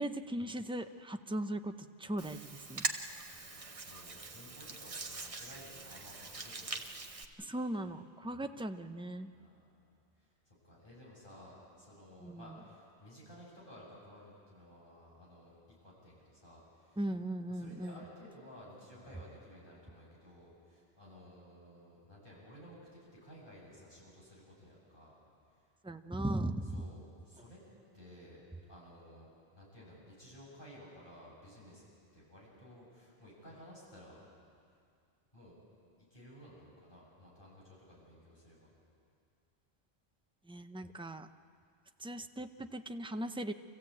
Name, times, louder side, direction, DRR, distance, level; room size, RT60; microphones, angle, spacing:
voice 1, 0.0-1.7 2.0-2.9 7.4-9.3 12.2-12.4 17.0-18.0 25.8-26.8 40.5-41.3 42.0-43.5, right 1 dB, 5° right, 7 dB, 0.5 m, -38 dB
Hands, 2.2-7.2, right 3 dB, 35° right, 1.1 m, -42 dB
voice 2, 3.3-6.8 8.2-8.5 9.3-17.0 17.5-25.1 25.5-25.7 26.7-27.6 27.9-34.3 35.3-35.6 36.0-38.7, equal, 50° left, -5 dB, 7.5 m, -55 dB
26.5 x 15.5 x 8.6 m, 2.3 s
omnidirectional pair, 1.1 m